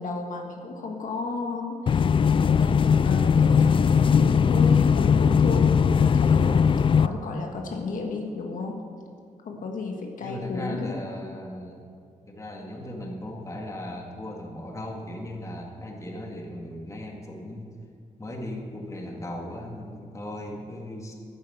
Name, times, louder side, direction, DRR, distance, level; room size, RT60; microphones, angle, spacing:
voice 1, 0.0-8.8 9.4-11.0, left 3 dB, 75° left, 2 dB, 1.6 m, -33 dB
sound 1, 1.9-7.1, left 6 dB, 40° left, 0.3 m, -19 dB
voice 2, 10.2-11.8 12.3-17.7 18.2-21.1, left 1 dB, 20° left, 0 dB, 2.0 m, -37 dB
11.0 x 10.0 x 7.9 m, 2.4 s
wide cardioid pair, 125°, 14 cm